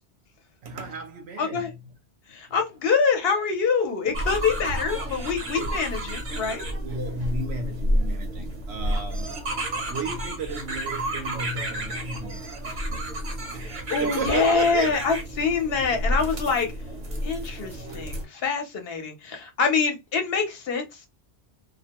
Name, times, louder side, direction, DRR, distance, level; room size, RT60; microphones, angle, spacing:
voice 1, 0.6-1.8 4.0-4.2 5.6-5.8 6.8-9.4 9.9-12.8 13.5-15.0 15.8-15.9, right 3 dB, 75° right, 0.8 m, -34 dB
voice 2, 1.4-1.7 2.3-6.6 13.9-16.7 17.2-21.1, left 5 dB, 65° left, 1.0 m, -25 dB
sound 1, 4.1-18.2, right 1 dB, 50° right, 0.9 m, -30 dB
2.3 x 2.1 x 2.8 m
omnidirectional pair, 1.1 m